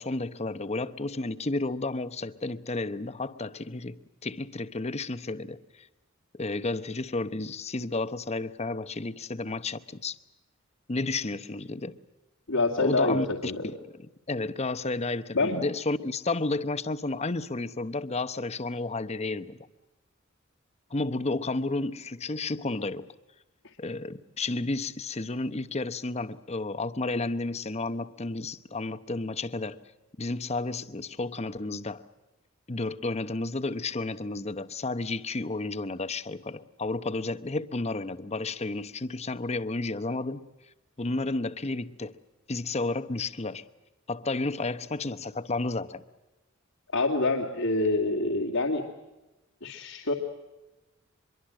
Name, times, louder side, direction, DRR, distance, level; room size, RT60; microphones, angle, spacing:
voice 1, 0.0-5.9 6.3-10.2 10.9-12.0 12.8-13.8 14.3-19.6 20.9-23.1 23.8-29.8 30.2-32.0 32.7-40.4 41.0-42.2 42.5-43.6 44.1-46.0, left 2 dB, 30° left, 0.9 m, -32 dB
voice 2, 12.5-13.7 15.3-15.6 46.9-48.8 49.6-50.1, left 2 dB, 80° left, 2.5 m, -26 dB
24.5 x 23.0 x 7.6 m
head